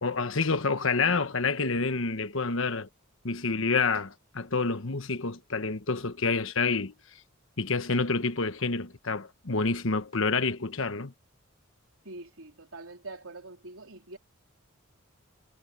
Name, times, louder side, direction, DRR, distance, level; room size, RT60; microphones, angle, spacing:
voice 1, 0.0-2.9 3.2-6.9 7.6-11.1, left 4 dB, 70° left, 1.3 m, -28 dB
voice 2, 12.0-14.2, right 2 dB, 85° right, 3.4 m, -44 dB
head